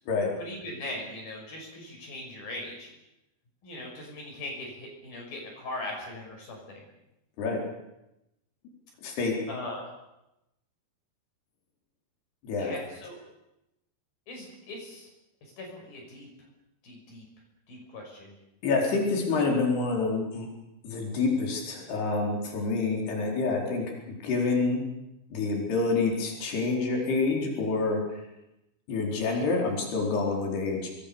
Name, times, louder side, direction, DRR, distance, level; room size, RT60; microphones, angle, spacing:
voice 1, 0.4-2.9 3.6-6.9 9.5-9.8 12.6-13.2 14.3-15.1 15.4-16.3 16.8-17.2 17.7-18.3, left 1 dB, 60° left, 0 dB, 7.7 m, -40 dB
voice 2, 9.0-9.4 12.4-12.8 18.6-20.5 20.8-23.9 24.2-24.8 25.3-28.2 28.9-30.9, left 3 dB, 80° left, 0 dB, 6.5 m, -27 dB
28.5 x 21.0 x 7.1 m, 0.90 s
omnidirectional pair, 4.6 m